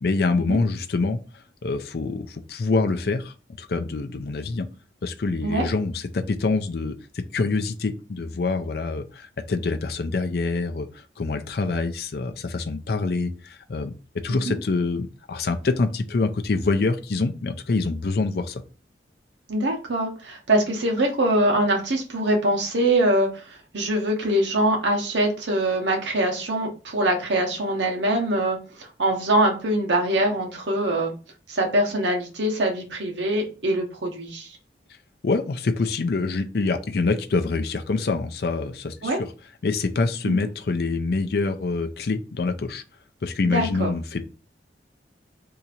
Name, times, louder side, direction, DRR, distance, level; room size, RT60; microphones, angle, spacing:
voice 1, 0.0-1.2 1.6-4.7 5.0-13.9 14.2-18.6 35.2-39.3 39.6-42.8 43.2-44.2, left 3 dB, 55° left, 7 dB, 0.5 m, -25 dB
voice 2, 19.5-31.1 31.5-34.5 39.0-39.2 40.2-40.4 43.5-43.9, right 1 dB, 80° right, 1 dB, 1.0 m, -23 dB
2.8 x 2.5 x 4.2 m, 0.35 s
head